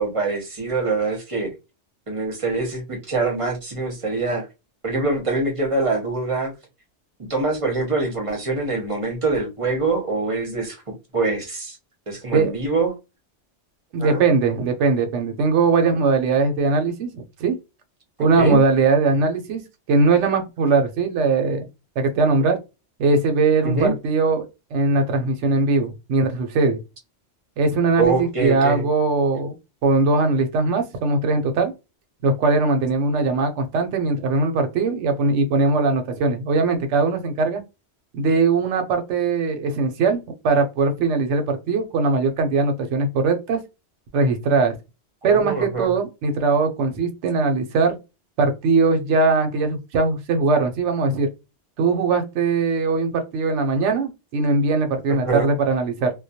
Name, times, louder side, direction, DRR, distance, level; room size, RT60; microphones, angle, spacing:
voice 1, 0.0-1.5 2.1-4.5 4.8-6.5 7.2-11.8 12.1-12.9 14.0-14.2 18.2-18.6 23.6-23.9 28.0-28.9 45.2-45.9 55.1-55.5, right 3 dB, 35° right, 0.7 m, -24 dB
voice 2, 13.9-17.6 18.2-19.6 19.9-21.7 22.0-22.6 23.0-26.8 27.6-29.6 29.8-31.7 32.2-37.6 38.1-43.6 44.1-44.8 45.2-48.0 48.4-51.3 51.8-56.1, right 3 dB, 80° right, 0.9 m, -20 dB
2.2 x 2.1 x 2.6 m
omnidirectional pair, 1.2 m